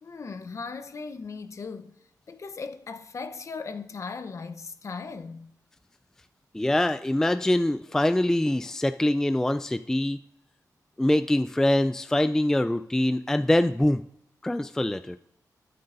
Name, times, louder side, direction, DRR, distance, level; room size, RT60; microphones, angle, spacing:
voice 1, 0.0-1.9 2.3-5.5, left 4 dB, 45° left, 0.9 m, -38 dB
voice 2, 6.5-10.2 11.0-14.0 14.4-15.2, left 1 dB, 5° left, 0.3 m, -24 dB
21.0 x 7.8 x 2.6 m
wide cardioid pair, 115°, 7 cm